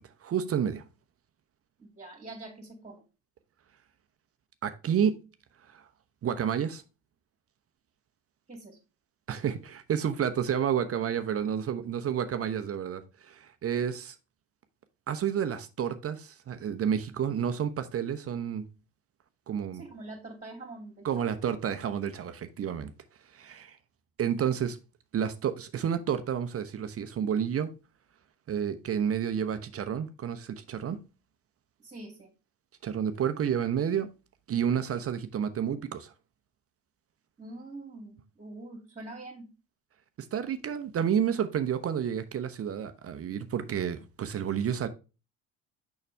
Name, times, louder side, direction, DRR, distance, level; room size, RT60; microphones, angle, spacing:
voice 1, 0.2-0.8 4.6-5.2 5.7-5.8 6.2-6.8 9.3-14.1 15.1-18.6 19.5-19.8 21.0-22.9 23.3-23.8 24.2-24.8 25.1-27.7 28.5-31.0 32.8-34.1 34.5-36.1 40.3-44.9, right 8 dB, 35° right, 0.8 m, -30 dB
voice 2, 1.8-3.0 8.5-8.8 19.7-21.3 31.8-32.3 37.4-39.5, right 2 dB, 15° right, 2.3 m, -44 dB
6.6 x 5.8 x 3.3 m
hypercardioid pair, 70°, 40 cm